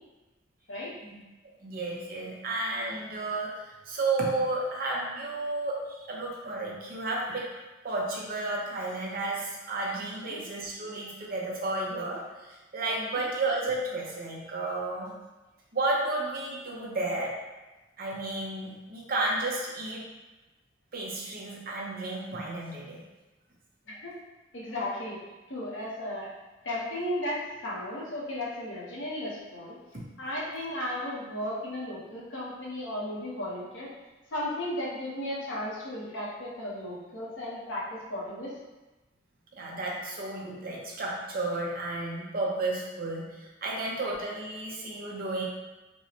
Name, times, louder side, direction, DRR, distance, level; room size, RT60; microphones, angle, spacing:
voice 1, 1.6-7.4 7.8-15.1 15.7-17.4 18.0-20.0 20.9-23.0 39.5-45.4, right 2 dB, 50° right, -3 dB, 0.8 m, -32 dB
voice 2, 24.5-25.2 25.5-26.3 26.6-29.8 30.2-33.9 34.3-38.5 44.0-44.1, left 1 dB, 90° left, -6 dB, 1.0 m, -35 dB
4.5 x 2.2 x 2.8 m, 1.1 s
head